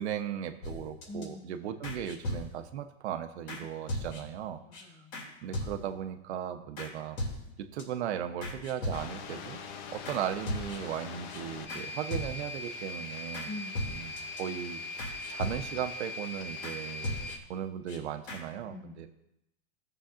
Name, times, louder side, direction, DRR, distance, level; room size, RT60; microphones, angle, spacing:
voice 1, 0.0-4.6 5.4-7.2 7.6-9.6 9.9-13.5 13.9-14.1 14.4-19.1, right 9 dB, 75° right, 8 dB, 0.9 m, -37 dB
sound 1, 0.6-1.2 1.8-2.8 3.5-3.6 3.9-4.4 4.7-4.8 5.1-5.3 5.5-6.1 6.8-6.9 7.2-7.8 8.4-9.3 10.0-10.2 10.5-11.0 11.3-11.4 11.7-11.8 12.1-12.6 13.3-13.5 13.7-14.4 15.0-15.9 16.6-16.8 17.0-17.6 17.9-18.0 18.3-18.4, left 1 dB, 70° left, 2.8 m, -37 dB
voice 2, 1.1-1.6 3.9-4.3 4.6-5.1 13.5-14.0 18.7-19.1, left 2 dB, 15° left, 3 dB, 0.6 m, -44 dB
sound 2, 8.9-17.4, left 3 dB, 45° left, 0.8 m, -41 dB
15.5 x 6.8 x 2.5 m, 0.86 s
supercardioid pair, 160°, 34 cm